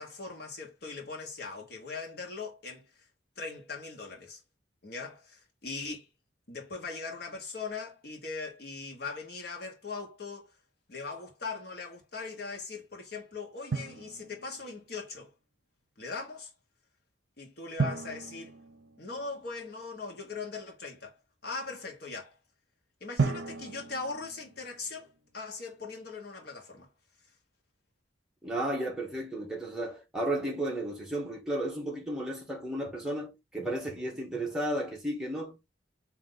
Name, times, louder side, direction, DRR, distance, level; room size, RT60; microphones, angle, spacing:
voice 1, 0.0-2.8 3.4-4.4 4.8-6.1 6.5-10.5 10.9-15.3 16.0-16.5 17.4-18.5 19.0-21.2 21.4-22.3 23.0-26.9, left 4 dB, 55° left, 1.2 m, -40 dB
Drum, 13.7-14.8 17.8-19.6 23.2-25.2, right 4 dB, 65° right, 0.6 m, -34 dB
voice 2, 28.4-35.7, right 1 dB, 5° right, 1.1 m, -33 dB
3.9 x 2.8 x 3.8 m
head